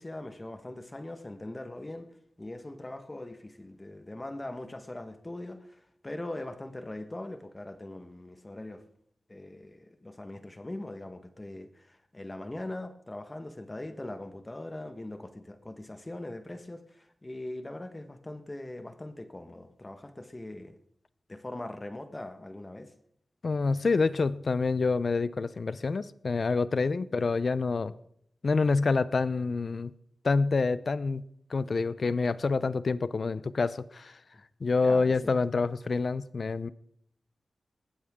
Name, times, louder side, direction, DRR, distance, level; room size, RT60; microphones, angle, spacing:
voice 1, 0.0-2.1 2.4-8.8 9.3-20.8 21.3-22.9 34.8-35.4, left 1 dB, 25° left, 8 dB, 1.4 m, -41 dB
voice 2, 23.4-27.9 28.4-29.9 30.2-31.2 31.5-34.1 34.6-36.7, left 4 dB, 60° left, 16 dB, 0.6 m, -27 dB
20.5 x 15.5 x 3.7 m, 0.70 s
wide cardioid pair, 80°, 0 cm